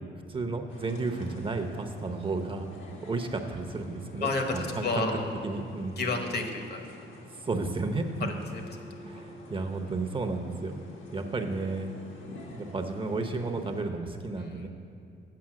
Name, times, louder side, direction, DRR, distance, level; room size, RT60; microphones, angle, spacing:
voice 1, 0.3-2.7 3.1-5.1 5.4-6.0 7.4-8.4 9.0-11.9 12.5-14.7, right 3 dB, 25° right, 4 dB, 0.7 m, -33 dB
sound 1, 0.7-13.8, left 1 dB, 75° left, 1.4 m, -48 dB
voice 2, 4.2-4.6 4.8-5.3 6.0-6.8 8.2-8.6 14.4-14.7, left 3 dB, 55° left, 4 dB, 1.2 m, -31 dB
7.7 x 5.5 x 7.4 m, 2.5 s
cardioid pair, 90°, 20 cm